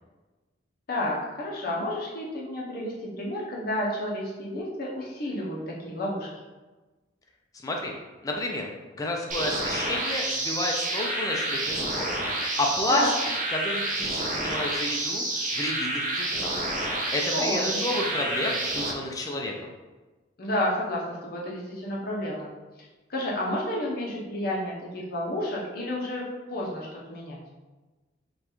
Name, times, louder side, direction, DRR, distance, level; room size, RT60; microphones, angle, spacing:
voice 1, 0.9-6.3 12.9-13.1 17.3-17.7 20.4-22.5 23.1-27.4, left 1 dB, 50° left, -4 dB, 0.8 m, -31 dB
voice 2, 7.6-7.9 8.2-8.7 8.9-12.3 12.6-13.1 13.5-16.6 17.1-19.5, left 1 dB, 20° left, 0 dB, 0.4 m, -30 dB
sound 1, 9.3-18.9, right 2 dB, 40° right, 0.6 m, -29 dB
5.2 x 2.3 x 3.0 m, 1.2 s
head